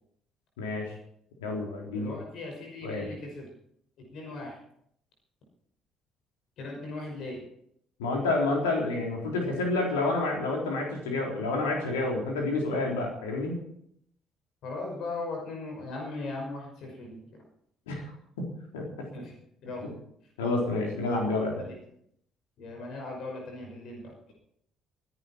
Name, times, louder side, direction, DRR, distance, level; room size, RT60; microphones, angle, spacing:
voice 1, 0.6-0.9 1.4-2.1 2.8-3.1 8.0-13.6 17.9-18.0 18.7-19.1 20.4-21.7, left 2 dB, 75° left, 0 dB, 3.9 m, -29 dB
voice 2, 1.9-3.5 4.1-4.6 6.6-7.4 14.6-17.2 19.1-19.3 19.6-20.0 21.6-21.8 22.6-24.3, left 2 dB, 55° left, 0 dB, 5.7 m, -38 dB
23.0 x 11.0 x 4.5 m, 0.71 s
figure-of-eight pair, 50°, 0 cm